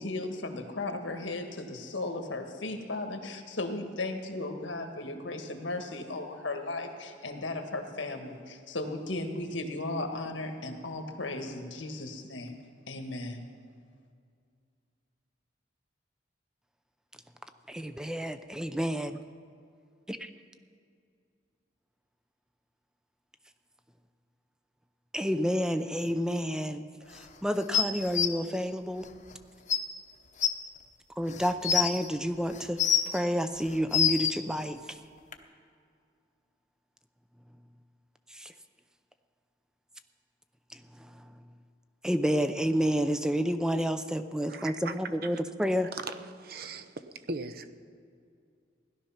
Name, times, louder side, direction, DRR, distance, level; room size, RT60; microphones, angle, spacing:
voice 1, 0.0-12.6 12.9-13.4, left 2 dB, 90° left, 5 dB, 1.6 m, -36 dB
voice 2, 17.7-19.2 25.1-26.9 27.1-29.1 31.2-32.8 33.1-34.8 38.3-38.5 40.7-41.1 42.0-45.9, equal, 5° right, 9 dB, 0.5 m, -29 dB
sound 1, 27.7-28.3 29.3-29.4 29.7-29.8 30.4-30.5 31.3-31.9 32.5-33.2 33.7-34.3 35.3-35.4, left 8 dB, 40° left, 0.9 m, -25 dB
voice 3, 44.5-44.9 45.9-47.7, right 3 dB, 55° right, 10 dB, 0.8 m, -39 dB
17.0 x 12.0 x 5.8 m, 2.3 s
head